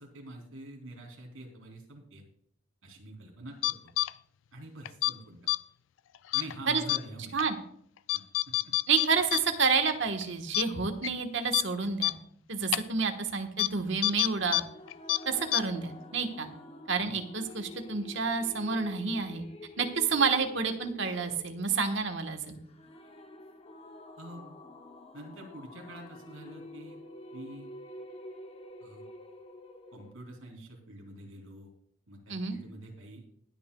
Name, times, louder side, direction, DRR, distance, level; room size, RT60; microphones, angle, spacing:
voice 1, 0.0-2.2 2.8-3.9 4.5-5.4 6.3-7.4 8.1-8.7 24.2-24.5 25.1-27.0 27.3-27.7 28.8-29.0 29.9-31.7 32.1-33.2, right 1 dB, 85° right, 2 dB, 3.1 m, -46 dB
sound 1, 3.6-4.1 4.9-5.1 5.5-5.6 6.3-6.5 6.9-7.0 7.4-7.5 8.1-9.4 9.7-9.8 10.2-10.3 10.5-10.6 11.0-11.1 11.5-11.6 12.0-12.1 12.7-12.8 13.6-13.7 14.0-14.6 14.9-15.2 15.5-15.6, left 18 dB, 65° left, 0.3 m, -27 dB
voice 2, 8.9-12.1 12.5-14.6 15.2-16.5 16.9-19.4 19.8-22.6 32.3-32.6, right 5 dB, 60° right, 6 dB, 1.3 m, -29 dB
sound 2, 14.1-30.1, left 1 dB, 30° left, 0.8 m, -48 dB
20.5 x 9.0 x 2.3 m, 0.65 s
head